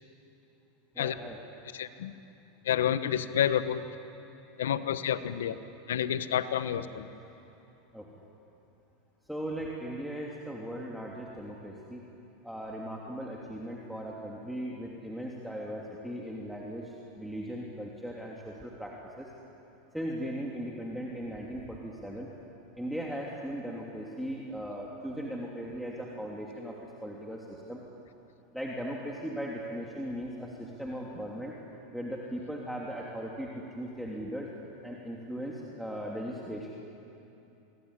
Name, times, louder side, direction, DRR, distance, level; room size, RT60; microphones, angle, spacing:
voice 1, 0.9-1.4 7.9-8.1 9.3-12.0 12.4-19.3 19.9-22.3 22.8-27.8 28.5-31.5 31.9-34.5 34.8-36.7, equal, ahead, -3 dB, 3.1 m, -38 dB
voice 2, 1.7-2.1 2.6-3.9 4.6-5.6 5.9-7.1, left 9 dB, 85° left, 12 dB, 1.2 m, -29 dB
26.5 x 21.0 x 9.9 m, 2.9 s
hypercardioid pair, 110°, 0 cm